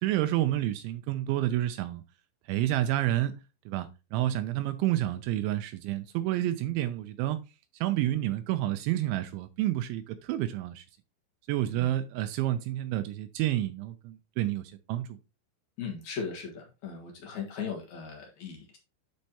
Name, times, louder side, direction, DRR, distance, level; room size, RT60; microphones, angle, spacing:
voice 1, 0.0-2.0 2.5-3.4 3.7-7.4 7.8-10.8 11.5-15.2, right 14 dB, 85° right, 2.7 m, -29 dB
voice 2, 15.8-18.8, left 6 dB, 65° left, 1.8 m, -38 dB
11.5 x 4.4 x 2.8 m
omnidirectional pair, 5.7 m